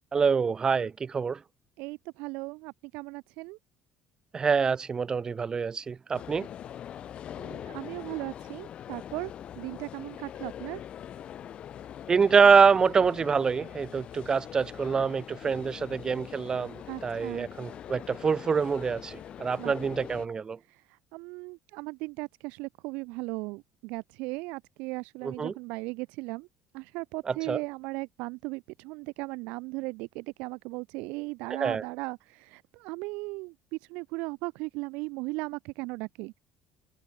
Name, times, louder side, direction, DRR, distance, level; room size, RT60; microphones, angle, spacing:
voice 1, 0.1-1.4 4.3-6.5 12.1-20.6 25.2-25.5 27.3-27.6 31.5-31.8, right 5 dB, 35° right, 1.5 m, -25 dB
voice 2, 1.8-3.6 7.4-10.8 16.9-17.5 19.6-19.7 20.7-26.5 26.7-36.4, right 25 dB, 70° right, 0.5 m, -37 dB
sound 1, 6.1-20.3, left 10 dB, 55° left, 7.0 m, -43 dB
hypercardioid pair, 65°, 2 cm